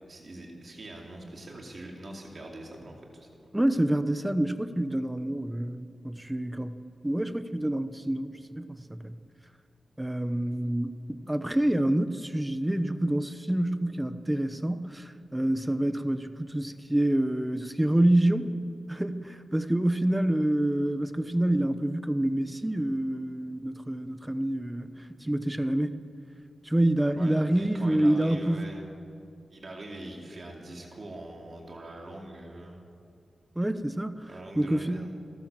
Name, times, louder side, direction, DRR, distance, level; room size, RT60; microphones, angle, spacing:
voice 1, 0.1-3.3 27.2-28.9 29.5-32.8 34.3-35.1, right 1 dB, 45° right, 0 dB, 4.1 m, -43 dB
voice 2, 3.5-6.8 7.0-9.2 10.0-18.6 18.9-25.9 26.6-28.7 33.6-34.3 34.6-35.1, right 1 dB, 10° right, 11 dB, 0.9 m, -27 dB
28.5 x 12.0 x 7.6 m, 2.3 s
wide cardioid pair, 100°, 0 cm